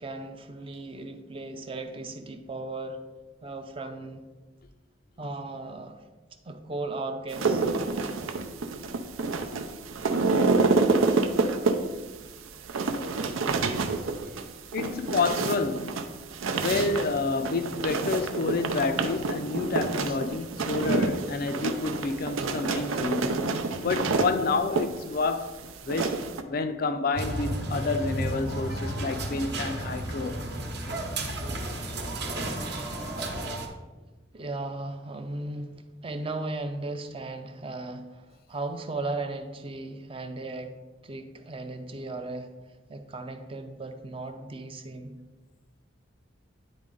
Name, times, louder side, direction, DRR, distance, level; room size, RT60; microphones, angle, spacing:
voice 1, 0.0-3.0 3.4-4.3 5.2-6.0 6.4-7.7 20.1-20.2 34.3-40.7 41.0-42.5 42.9-45.2, right 2 dB, 25° right, 0.5 m, -36 dB
sound 1, 7.3-26.4, right 3 dB, 85° right, 0.6 m, -28 dB
voice 2, 14.7-16.1 16.5-23.5 23.8-25.6 25.9-30.5, left 3 dB, 45° left, 0.4 m, -29 dB
sound 2, 27.1-33.7, right 1 dB, 55° right, 0.9 m, -32 dB
9.6 x 4.1 x 3.8 m
head